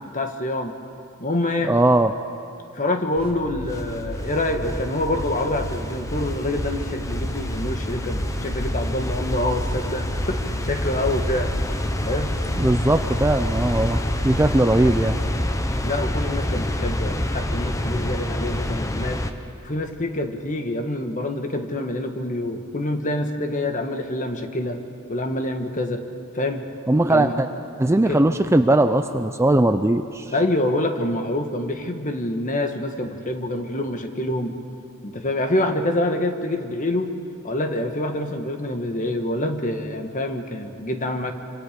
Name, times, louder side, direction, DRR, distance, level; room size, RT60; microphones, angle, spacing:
voice 1, 0.1-0.8 1.2-1.7 2.7-11.5 12.0-12.3 15.8-19.2 19.6-24.8 25.1-26.0 26.3-26.6 27.1-27.4 28.1-28.4 30.3-34.6 35.0-37.1 37.4-41.3, left 1 dB, 35° left, 5 dB, 1.5 m, -26 dB
voice 2, 1.7-2.1 12.6-15.2 26.9-27.5 27.8-30.3, right 1 dB, 10° right, 8 dB, 0.5 m, -19 dB
sound 1, 3.2-15.4, right 1 dB, 65° left, 4.0 m, -34 dB
sound 2, 3.7-19.3, left 1 dB, 15° left, 0.9 m, -27 dB
26.0 x 26.0 x 5.2 m, 2.5 s
head